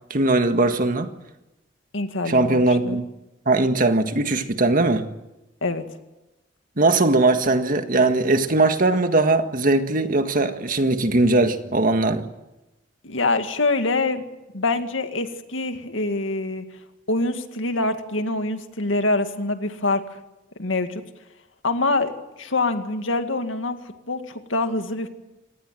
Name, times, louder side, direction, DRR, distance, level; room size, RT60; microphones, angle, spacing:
voice 1, 0.1-1.1 2.3-3.0 3.4-5.1 6.8-12.3, right 2 dB, 45° right, 1.7 m, -20 dB
voice 2, 1.9-3.0 5.6-5.8 13.0-14.2 14.5-16.6 17.1-20.0 20.6-21.0 21.6-22.1 22.4-23.8 24.1-25.1, left 2 dB, 90° left, 2.1 m, -25 dB
26.0 x 19.0 x 7.7 m
head